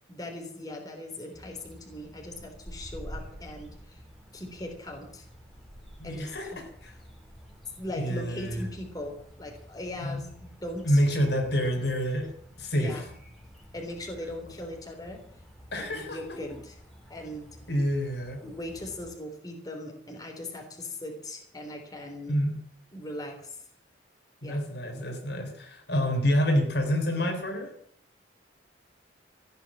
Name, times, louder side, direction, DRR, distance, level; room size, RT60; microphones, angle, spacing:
voice 1, 0.1-4.0 4.3-5.3 6.0-6.6 7.8-11.0 12.7-13.1 13.7-15.2 15.7-16.8 17.1-17.5 18.4-22.4 22.9-23.6 24.4-24.6, left 1 dB, 20° left, 2 dB, 3.6 m, -39 dB
sound 1, 1.3-19.2, equal, ahead, 3.2 m, -49 dB
voice 2, 6.0-6.9 8.0-8.7 10.0-10.2 10.9-13.0 15.7-16.4 17.7-18.4 22.3-22.5 24.4-27.8, equal, 60° left, 3 dB, 3.4 m, -28 dB
15.5 x 9.4 x 8.4 m, 0.63 s
head